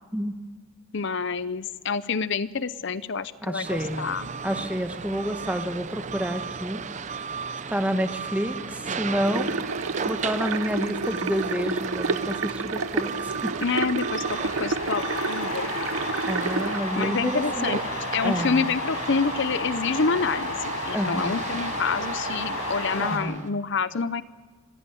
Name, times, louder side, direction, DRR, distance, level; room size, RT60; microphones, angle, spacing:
voice 1, 0.9-4.3 13.6-15.7 17.0-17.8 18.1-24.2, left 5 dB, 55° left, 14 dB, 0.7 m, -27 dB
voice 2, 3.4-4.1 4.4-6.8 7.7-9.5 10.0-13.5 16.2-17.7 18.2-18.6 20.9-21.3 23.0-23.4, equal, 5° right, 6 dB, 1.4 m, -29 dB
sound 1, 3.6-23.5, right 5 dB, 35° right, 0.6 m, -35 dB
sound 2, 9.3-16.8, right 4 dB, 75° right, 0.8 m, -30 dB
sound 3, 14.2-23.2, left 2 dB, 90° left, 6.2 m, -32 dB
25.0 x 16.0 x 9.2 m, 1.4 s
head